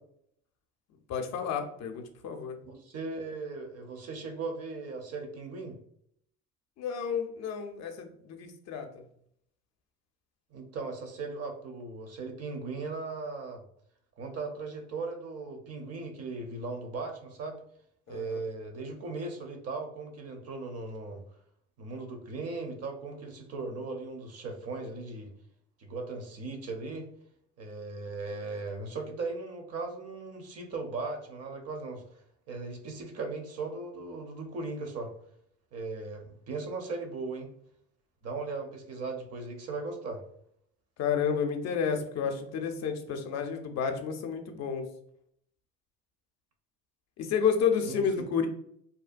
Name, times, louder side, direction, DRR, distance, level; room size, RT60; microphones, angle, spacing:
voice 1, 1.1-2.6 6.8-9.0 18.1-18.4 41.0-44.8 47.2-48.5, left 7 dB, 50° left, 5 dB, 0.5 m, -30 dB
voice 2, 2.6-5.8 10.5-13.6 14.2-17.6 18.1-21.2 21.8-25.3 25.8-27.1 27.6-32.0 32.5-35.1 35.7-37.5 38.2-40.2 47.8-48.0, right 3 dB, 45° right, 4 dB, 0.7 m, -38 dB
2.7 x 2.2 x 2.5 m, 0.69 s
supercardioid pair, 75°, 34 cm